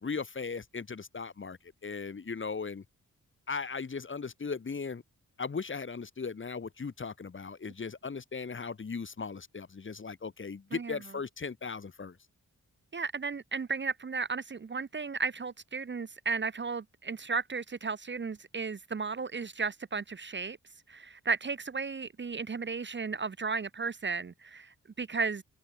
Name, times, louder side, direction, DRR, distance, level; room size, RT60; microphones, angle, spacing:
voice 1, 0.0-2.8 3.5-5.0 5.4-12.2, left 5 dB, 40° left, 1.4 m, -38 dB
voice 2, 12.9-20.6 20.9-25.4, right 4 dB, 35° right, 0.9 m, -34 dB
cardioid pair, 80°, 32 cm